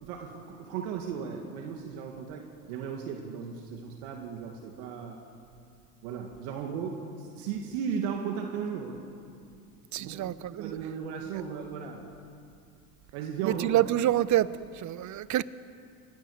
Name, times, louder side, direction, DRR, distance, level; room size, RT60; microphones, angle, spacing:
voice 1, 0.0-5.2 6.0-9.0 10.0-12.1 13.1-13.9, right 7 dB, 75° right, 2 dB, 2.2 m, -36 dB
voice 2, 9.9-10.7 13.4-14.5 14.8-15.4, right 13 dB, 40° right, 17 dB, 0.8 m, -27 dB
29.5 x 15.0 x 6.7 m, 2.5 s
hypercardioid pair, 85°, 44 cm